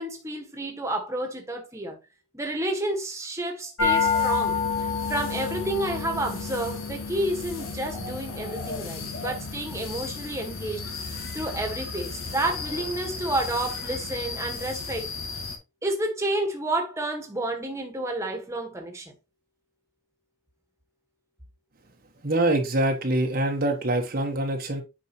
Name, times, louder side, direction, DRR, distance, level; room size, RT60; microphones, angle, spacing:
voice 1, 0.0-2.0 2.3-15.1 15.8-19.1, right 1 dB, 15° right, 1.6 m, -30 dB
sound 1, 3.8-15.6, left 5 dB, 80° left, 2.2 m, -31 dB
voice 2, 22.2-24.8, right 1 dB, 45° right, 1.2 m, -24 dB
8.6 x 5.2 x 3.0 m
head